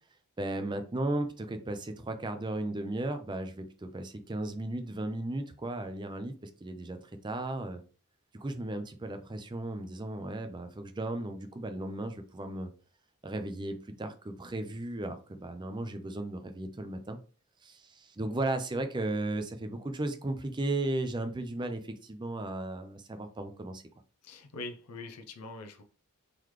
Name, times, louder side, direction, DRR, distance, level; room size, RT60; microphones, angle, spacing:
voice 1, 0.4-7.0 7.2-7.8 8.3-12.7 13.2-17.2 17.6-23.8, right 2 dB, 20° right, 0.5 m, -35 dB
voice 2, 24.2-25.8, left 3 dB, 90° left, 0.6 m, -43 dB
3.9 x 3.1 x 3.1 m
head